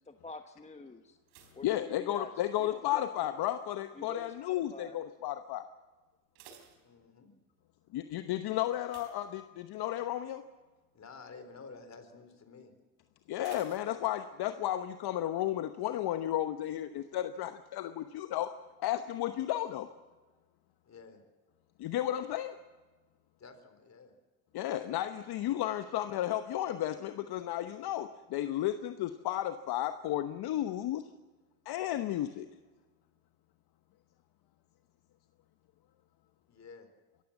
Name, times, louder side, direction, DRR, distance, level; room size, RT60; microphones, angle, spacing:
voice 1, 0.1-1.2 1.5-2.3 2.6-3.5 3.9-5.0, left 3 dB, 15° left, 7 dB, 1.1 m, -47 dB
sound 1, 1.2-2.7 3.0-3.5 4.1-4.5 4.8-4.9 5.3-5.4 6.0-7.5 8.8-10.0 10.3-10.6 11.0-11.1 13.4-14.6 14.9-15.0, right 7 dB, 75° right, 4.0 m, -58 dB
voice 2, 1.6-5.6 7.9-10.4 13.3-18.5 18.8-19.9 21.8-22.6 24.5-31.1 31.6-32.5, left 13 dB, 55° left, 9 dB, 1.1 m, -33 dB
voice 3, 6.8-7.4 10.9-12.7 20.8-21.2 23.4-24.1 36.5-36.9, left 4 dB, 35° left, 8 dB, 4.0 m, -51 dB
24.5 x 15.0 x 7.3 m, 1.3 s
hypercardioid pair, 80°, 46 cm